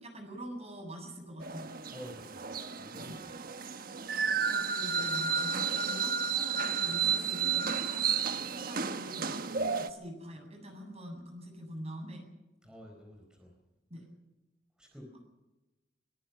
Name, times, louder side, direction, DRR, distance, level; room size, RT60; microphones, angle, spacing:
voice 1, 0.0-1.8 2.9-3.2 4.3-8.1 8.5-9.3 9.7-12.2 13.9-14.0, equal, 35° right, 4 dB, 7.8 m, -45 dB
sound 1, 1.4-9.9, right 6 dB, 55° right, 1.3 m, -32 dB
voice 2, 1.9-3.1 9.6-9.7 12.6-13.5 14.8-15.1, equal, 5° right, 1 dB, 4.4 m, -50 dB
23.0 x 22.5 x 5.9 m, 1.0 s
head